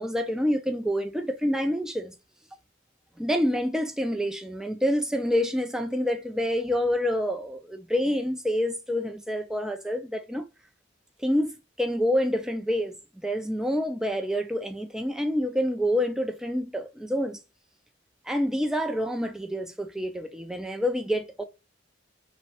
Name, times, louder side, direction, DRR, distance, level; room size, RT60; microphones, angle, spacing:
voice 1, 0.0-2.1 3.2-10.4 11.2-17.4 18.3-21.4, equal, 5° right, 0.3 m, -27 dB
3.1 x 2.1 x 2.8 m
head